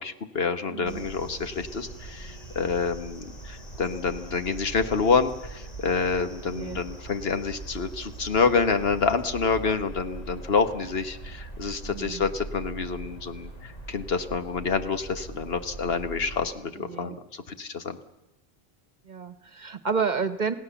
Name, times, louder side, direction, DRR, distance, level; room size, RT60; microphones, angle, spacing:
voice 1, 0.0-18.0, left 5 dB, 70° left, 9 dB, 1.5 m, -27 dB
voice 2, 0.7-1.0 6.5-6.8 11.8-12.3 16.8-17.2 19.0-20.5, right 5 dB, 45° right, 12 dB, 1.1 m, -30 dB
sound 1, 0.8-16.5, right 2 dB, 40° left, 2.6 m, -41 dB
sound 2, 0.9-10.0, left 2 dB, 10° right, 4.1 m, -54 dB
28.0 x 17.0 x 7.0 m, 0.87 s
omnidirectional pair, 1.1 m